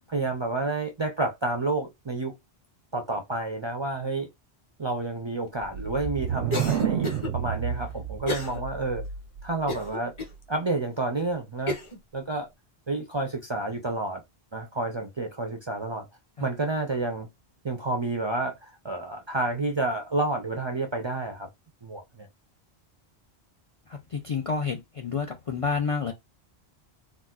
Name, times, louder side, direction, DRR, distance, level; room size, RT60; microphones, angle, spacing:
voice 1, 0.1-2.3 2.9-4.3 4.8-9.0 9.4-10.1 10.5-11.8 12.1-12.5 12.9-14.2 14.5-16.1 16.4-17.3 17.6-21.5 21.8-22.3, right 2 dB, 40° right, 0.4 m, -30 dB
sound 1, 5.6-9.4, right 8 dB, 85° right, 0.9 m, -30 dB
Cough, 6.5-7.3 8.3-8.6 9.0-9.1 9.7-10.3 10.9-11.0 11.7-12.0, left 2 dB, 30° left, 0.8 m, -32 dB
voice 2, 23.9-26.1, left 5 dB, 50° left, 0.4 m, -29 dB
4.0 x 2.4 x 2.3 m
omnidirectional pair, 1.1 m